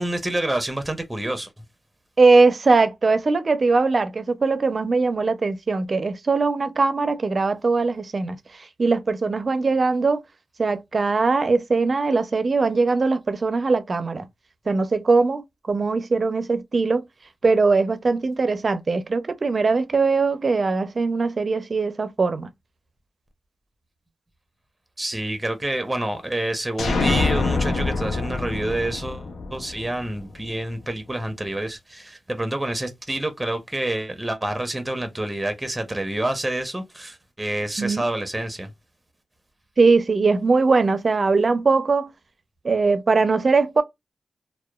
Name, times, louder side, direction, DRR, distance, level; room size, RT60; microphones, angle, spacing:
voice 1, 0.0-1.5 25.0-38.7, right 1 dB, 15° right, 0.7 m, -28 dB
voice 2, 2.2-8.4 8.8-10.2 10.6-14.3 14.7-17.0 17.4-22.5 37.8-38.0 39.8-42.1 42.6-43.8, right 4 dB, 50° right, 0.4 m, -20 dB
sound 1, 26.8-30.5, left 3 dB, 85° left, 0.5 m, -25 dB
2.8 x 2.1 x 2.2 m
cardioid pair, 65°, 0 cm